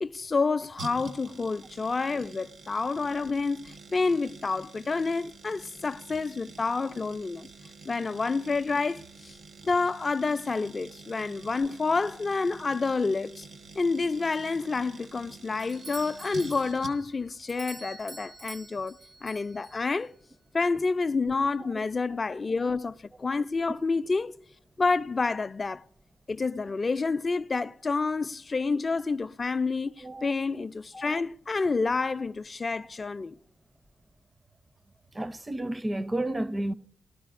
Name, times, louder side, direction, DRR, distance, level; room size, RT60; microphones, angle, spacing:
voice 1, 0.0-7.5 7.9-9.4 9.6-13.5 13.8-20.1 20.5-24.3 24.8-25.8 26.3-33.3, left 4 dB, 40° left, 0.3 m, -29 dB
sound 1, 0.8-17.3 17.5-17.6, right 4 dB, 75° right, 1.3 m, -47 dB
Doorbell, 15.6-20.1, right 2 dB, 60° right, 1.0 m, -47 dB
voice 2, 35.1-36.7, right 1 dB, 25° right, 0.5 m, -31 dB
18.5 x 13.0 x 2.5 m
cardioid pair, 70°, 0 cm